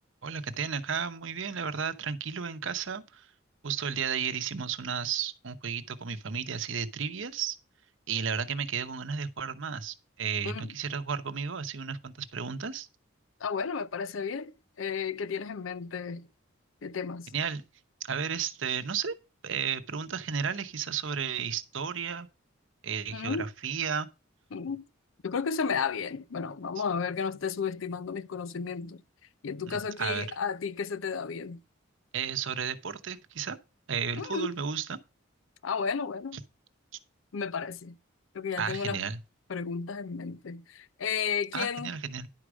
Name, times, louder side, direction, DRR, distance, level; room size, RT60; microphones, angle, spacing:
voice 1, 0.2-3.3 3.6-7.6 8.1-12.9 17.3-17.6 18.0-19.1 19.4-22.3 22.8-24.1 30.0-30.3 32.1-33.6 33.9-35.0 38.6-39.2 41.5-42.3, right 6 dB, 70° right, 0.8 m, -33 dB
voice 2, 10.4-10.7 13.4-16.3 16.8-17.3 23.1-23.5 24.5-24.9 25.2-29.0 29.4-31.6 34.2-34.6 35.6-36.4 37.3-38.0 38.3-39.0 39.5-41.9, left 6 dB, 75° left, 0.5 m, -33 dB
11.0 x 4.8 x 6.2 m
head